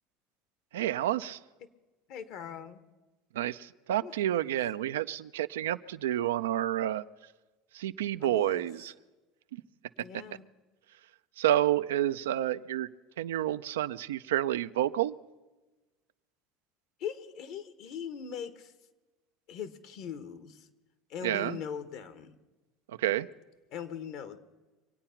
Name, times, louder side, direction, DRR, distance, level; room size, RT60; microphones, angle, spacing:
voice 1, 0.7-1.4 3.3-7.0 7.7-8.9 11.4-12.9 13.2-15.2 21.2-21.6 22.9-23.3, right 12 dB, 90° right, 13 dB, 0.4 m, -29 dB
voice 2, 2.1-2.8 4.0-4.1 4.4-4.5 8.2-8.7 10.0-10.5 17.0-18.7 19.5-20.7 21.1-22.4 23.7-24.4, left 8 dB, 65° left, 12 dB, 1.3 m, -40 dB
24.5 x 9.0 x 5.8 m, 1.2 s
hypercardioid pair, 90°, 0 cm